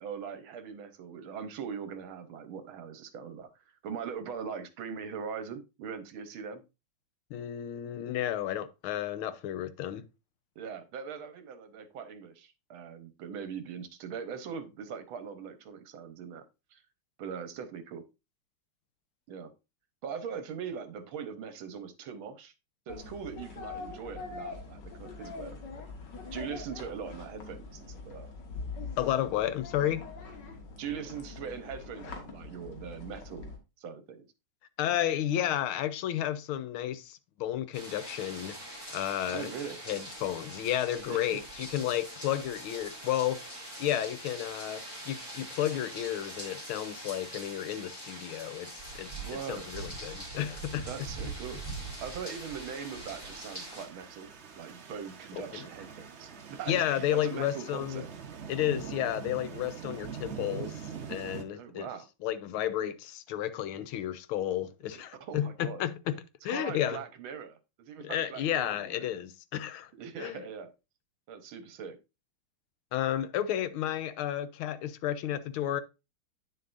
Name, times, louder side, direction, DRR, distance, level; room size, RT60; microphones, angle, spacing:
voice 1, 0.0-3.5 3.8-6.6 10.6-16.4 16.7-16.8 17.2-18.0 19.3-19.5 20.0-22.5 22.9-25.7 26.3-28.3 30.8-34.3 39.3-39.8 41.1-41.4 49.2-49.7 50.9-51.6 52.0-54.3 54.5-58.1 61.6-62.1 65.2-65.8 66.5-69.1 70.0-70.7 71.3-72.0, right 7 dB, 75° right, 1.7 m, -41 dB
voice 2, 7.3-10.1 29.0-30.1 34.8-38.6 38.9-39.5 39.9-43.4 43.8-48.7 49.0-50.9 55.3-55.7 56.7-58.0 58.5-60.8 61.1-61.9 62.2-67.0 68.0-69.9 70.2-70.4 72.9-75.8, left 11 dB, 85° left, 1.6 m, -32 dB
sound 1, 22.9-33.6, left 4 dB, 60° left, 2.0 m, -43 dB
sound 2, 37.7-53.9, right 2 dB, 10° left, 2.9 m, -43 dB
sound 3, 51.1-61.4, right 7 dB, 50° right, 0.8 m, -44 dB
9.2 x 6.6 x 2.5 m
omnidirectional pair, 2.3 m